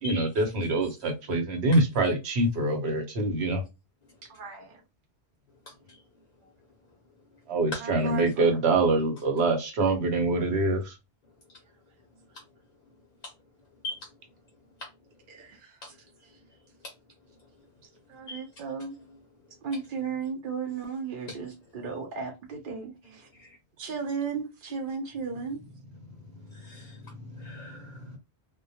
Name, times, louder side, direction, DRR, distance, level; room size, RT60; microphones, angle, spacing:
voice 1, 0.0-3.6 7.5-10.9, right 2 dB, 75° right, 1.0 m, -25 dB
voice 2, 4.3-4.8 6.4-6.5 7.8-8.8 15.3-16.4 18.1-19.0 19.6-23.3 23.8-25.6, right 5 dB, 60° right, 0.6 m, -35 dB
voice 3, 26.5-27.0 27.4-28.0, left 2 dB, 55° left, 0.6 m, -39 dB
2.2 x 2.1 x 2.6 m
omnidirectional pair, 1.1 m